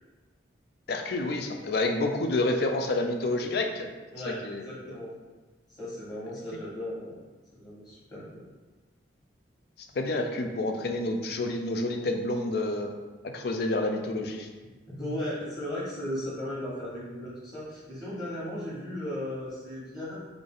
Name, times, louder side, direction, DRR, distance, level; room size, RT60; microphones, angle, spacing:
voice 1, 0.9-3.9 4.3-4.7 10.0-12.9 13.3-14.5, left 2 dB, 55° left, 4 dB, 0.4 m, -29 dB
voice 2, 4.1-5.1 5.8-7.2 7.5-8.2 15.0-20.1, left 1 dB, 25° left, -8 dB, 1.2 m, -36 dB
3.4 x 2.5 x 3.7 m, 1.3 s
head